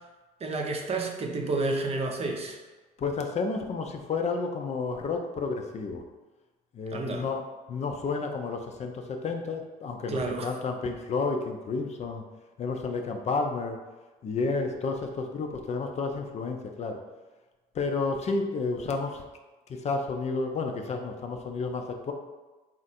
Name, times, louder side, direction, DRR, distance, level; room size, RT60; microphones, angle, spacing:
voice 1, 0.4-2.6 6.9-7.3 10.1-10.5, right 3 dB, 35° right, 2 dB, 0.6 m, -30 dB
voice 2, 3.0-6.0 6.7-7.4 7.7-12.2 12.6-13.8 14.2-17.0 17.7-19.2 19.8-22.1, left 4 dB, 40° left, 4 dB, 0.5 m, -31 dB
4.3 x 2.5 x 4.2 m, 1.2 s
cardioid pair, 110°, 17 cm